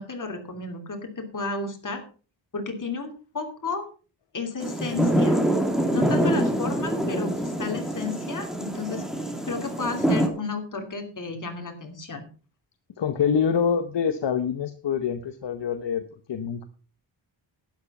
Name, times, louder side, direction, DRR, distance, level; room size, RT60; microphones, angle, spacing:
voice 1, 0.0-2.0 2.5-3.9 4.3-5.4 5.9-9.0 9.4-12.2, left 4 dB, 45° left, 4 dB, 2.8 m, -33 dB
sound 1, 4.6-10.3, right 1 dB, ahead, 2.4 m, -25 dB
voice 2, 13.0-16.0 16.3-16.6, left 7 dB, 70° left, 8 dB, 1.0 m, -25 dB
12.0 x 9.6 x 5.4 m, 0.37 s
wide cardioid pair, 160°, 44 cm